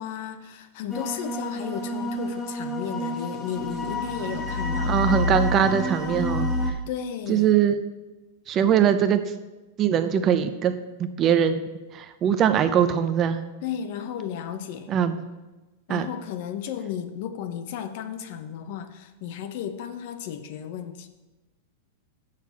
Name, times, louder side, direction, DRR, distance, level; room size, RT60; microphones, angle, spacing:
voice 1, 0.0-5.0 6.9-7.6 13.6-14.9 15.9-21.1, left 9 dB, 50° left, 9 dB, 0.8 m, -34 dB
sound 1, 0.9-6.7, left 1 dB, 10° left, 1.3 m, -28 dB
voice 2, 4.9-6.7 7.3-7.8 8.5-9.2 9.8-10.7 11.2-11.6 11.9-13.4 14.9-15.2 15.9-16.1, right 9 dB, 25° right, 10 dB, 0.6 m, -21 dB
7.9 x 6.6 x 6.9 m, 1.1 s
supercardioid pair, 155°, 0 cm